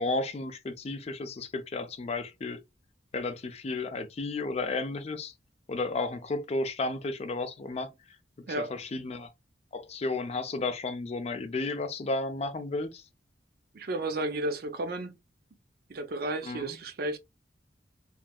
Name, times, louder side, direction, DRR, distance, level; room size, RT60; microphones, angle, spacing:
voice 1, 0.0-2.6 3.1-5.3 5.7-7.9 8.4-9.3 9.7-13.0 16.4-16.8, left 3 dB, 35° left, 0.4 m, -33 dB
voice 2, 13.7-15.2 15.9-17.2, right 2 dB, 55° right, 0.5 m, -33 dB
3.1 x 2.6 x 2.2 m
head